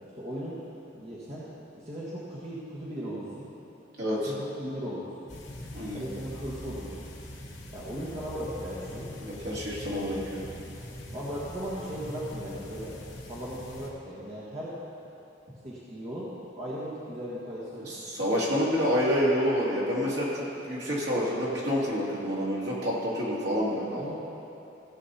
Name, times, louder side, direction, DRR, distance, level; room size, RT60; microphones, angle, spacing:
voice 1, 0.1-0.6 0.9-3.5 4.3-5.3 5.9-7.1 7.7-9.1 11.1-13.0 13.3-14.8 15.0-15.1 15.6-17.9 23.9-24.1, equal, 35° right, -8 dB, 1.5 m, -37 dB
voice 2, 4.0-4.3 5.7-6.0 9.2-10.4 17.9-24.0, equal, 60° right, -6 dB, 2.7 m, -28 dB
sound 1, 5.3-13.9, left 1 dB, 75° left, 2.3 m, -42 dB
16.5 x 7.5 x 4.2 m, 2.9 s
head